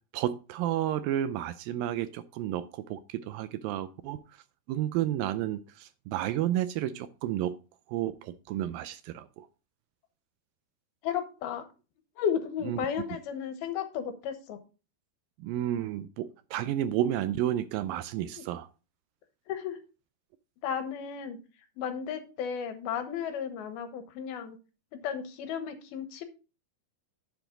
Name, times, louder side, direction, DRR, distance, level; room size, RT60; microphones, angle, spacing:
voice 1, 0.1-4.2 4.7-7.6 7.9-9.5 12.7-12.9 15.4-18.7, right 12 dB, 80° right, 13 dB, 2.2 m, -31 dB
voice 2, 11.0-11.6 12.2-14.6 18.3-18.4 19.5-19.8 20.6-21.4 21.8-24.6 25.0-26.3, left 8 dB, 80° left, 8 dB, 3.0 m, -34 dB
10.5 x 7.1 x 3.8 m, 0.33 s
omnidirectional pair, 4.4 m